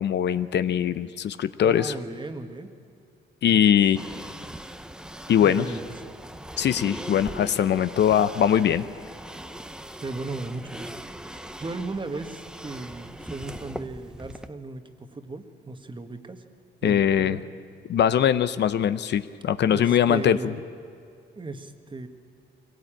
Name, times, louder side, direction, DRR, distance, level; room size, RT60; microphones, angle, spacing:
voice 1, 0.0-1.9 3.4-4.0 5.3-5.6 6.6-8.8 16.8-17.4 17.9-20.4, left 9 dB, 60° left, 13 dB, 0.7 m, -21 dB
voice 2, 1.6-2.7 3.5-3.8 5.4-5.8 10.0-16.4 16.8-17.4 19.7-20.6 21.3-22.1, right 3 dB, 25° right, 7 dB, 1.6 m, -36 dB
sound 1, 3.9-14.5, right 1 dB, 5° right, 0.8 m, -40 dB
22.5 x 18.0 x 8.9 m, 2.3 s
cardioid pair, 90°, 20 cm